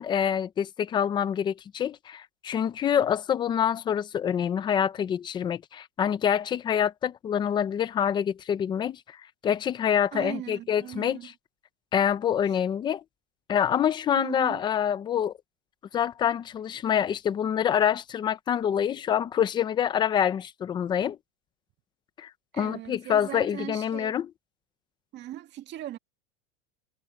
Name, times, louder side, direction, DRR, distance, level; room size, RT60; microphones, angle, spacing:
voice 1, 0.0-9.0 9.4-11.2 11.9-13.0 13.5-15.3 15.9-21.2 22.2-24.3, left 9 dB, 15° left, 0.5 m, -26 dB
voice 2, 10.1-11.3 12.5-12.6 14.1-14.6 22.5-24.2 25.1-26.0, right 13 dB, 30° right, 1.9 m, -39 dB
supercardioid pair, 160°, 36 cm